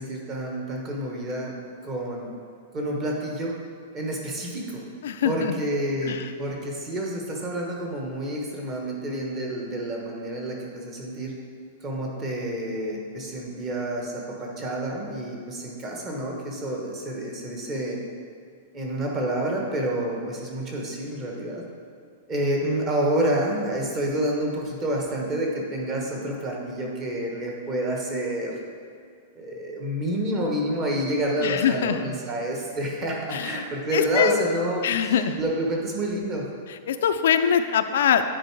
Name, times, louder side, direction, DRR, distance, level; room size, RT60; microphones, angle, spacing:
voice 1, 0.0-1.5 1.8-2.3 2.7-3.5 3.9-4.8 5.2-11.4 11.8-18.0 18.7-21.6 22.3-28.6 29.4-36.5, right 1 dB, 20° right, -1 dB, 1.0 m, -28 dB
voice 2, 5.0-5.5 6.1-6.3 31.4-32.1 33.3-33.6 33.9-34.4 34.8-35.4 36.7-38.2, left 8 dB, 70° left, 8 dB, 0.4 m, -23 dB
8.8 x 4.5 x 4.6 m, 2.2 s
supercardioid pair, 175°, 0 cm